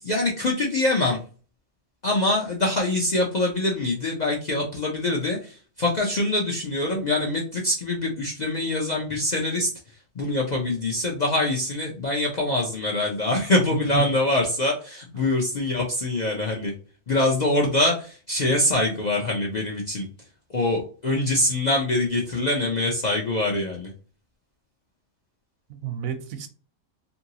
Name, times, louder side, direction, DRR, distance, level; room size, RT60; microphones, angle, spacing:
voice 1, 0.0-1.2 2.0-9.7 10.1-16.7 17.1-20.1 20.5-23.9, left 2 dB, 50° left, 0.5 m, -24 dB
voice 2, 13.7-14.1 15.2-15.3 25.7-26.5, right 8 dB, 85° right, 1.0 m, -30 dB
2.8 x 2.7 x 2.7 m
omnidirectional pair, 1.4 m